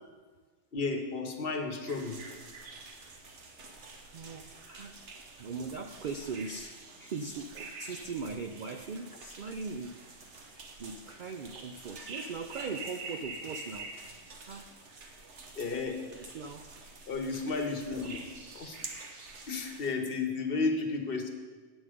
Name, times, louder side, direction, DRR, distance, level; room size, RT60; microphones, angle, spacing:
voice 1, 0.7-2.2 15.6-16.0 17.1-18.2 18.5-18.8 19.5-21.3, left 3 dB, 50° left, 4 dB, 1.1 m, -32 dB
sound 1, 1.9-19.9, right 3 dB, 60° right, 1.3 m, -47 dB
voice 2, 4.1-5.0 5.4-10.0 10.4-14.0 14.4-14.7 16.1-16.7, right 4 dB, 85° right, 6 dB, 0.4 m, -40 dB
8.8 x 8.2 x 5.0 m, 1.4 s
omnidirectional pair, 1.4 m